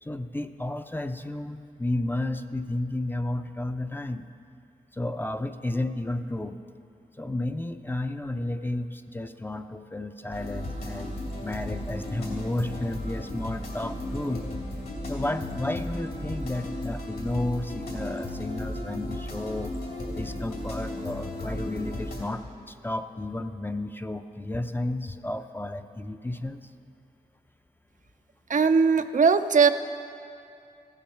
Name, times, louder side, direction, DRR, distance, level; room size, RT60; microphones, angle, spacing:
voice 1, 0.0-4.3 4.9-6.6 7.2-14.5 15.1-19.7 20.2-26.6, left 1 dB, 15° left, 8 dB, 0.5 m, -32 dB
sound 1, 10.3-22.2, left 1 dB, 70° left, 2.7 m, -35 dB
voice 2, 28.5-29.7, right 5 dB, 55° right, 9 dB, 0.5 m, -19 dB
14.5 x 7.3 x 5.7 m, 2.5 s
cardioid pair, 55°, 16 cm